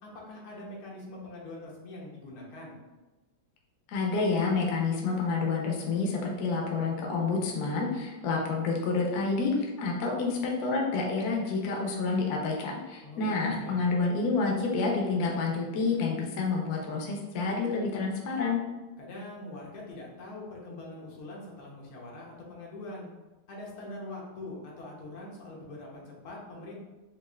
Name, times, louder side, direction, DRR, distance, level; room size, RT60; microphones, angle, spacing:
voice 1, 0.0-2.8 13.0-13.9 19.0-23.1 23.5-26.8, left 2 dB, 85° left, -2 dB, 1.8 m, -43 dB
voice 2, 3.9-18.6, left 4 dB, 65° left, 0 dB, 1.0 m, -29 dB
5.2 x 2.5 x 2.4 m, 1.1 s
omnidirectional pair, 2.2 m